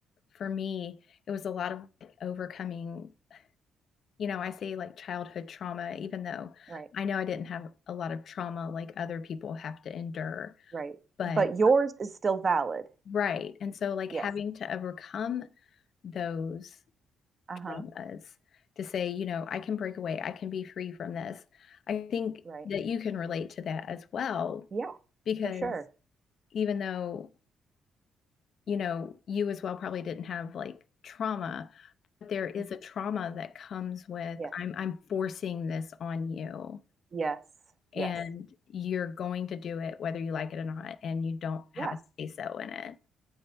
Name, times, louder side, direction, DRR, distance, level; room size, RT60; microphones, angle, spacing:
voice 1, 0.3-3.4 4.2-10.7 11.2-11.5 13.1-15.5 16.0-16.8 17.7-18.3 18.8-24.7 25.3-25.8 26.5-27.3 28.7-31.9 32.2-36.8 37.9-43.0, left 7 dB, 60° left, 0.5 m, -35 dB
voice 2, 11.4-12.8 14.1-14.2 17.5-17.8 22.5-22.6 24.7-24.9 25.6-25.8 34.4-34.5 37.1-37.4 37.9-38.1 41.8-41.9, right 4 dB, 40° right, 0.8 m, -28 dB
7.9 x 5.4 x 4.5 m
cardioid pair, 90°, 0 cm